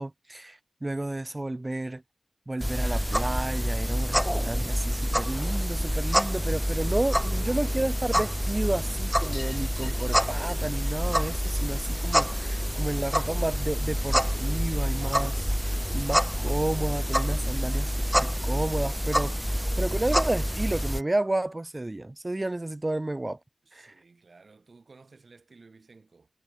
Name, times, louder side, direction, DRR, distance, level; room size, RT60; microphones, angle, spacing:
voice 1, 0.0-2.0 2.5-23.4 23.7-23.9, right 2 dB, 30° right, 0.4 m, -31 dB
sound 1, 2.6-21.0, equal, 5° right, 0.8 m, -27 dB
sound 2, 9.2-14.3 14.6-15.8 17.1-17.2 17.4-17.5 17.9-18.0 19.2-19.3 19.6-19.7 20.0-20.1 21.4-21.5 22.3-22.4, left 3 dB, 45° left, 3.2 m, -52 dB
voice 2, 23.6-26.3, right 4 dB, 65° right, 6.1 m, -55 dB
wide cardioid pair, 60°, 0 cm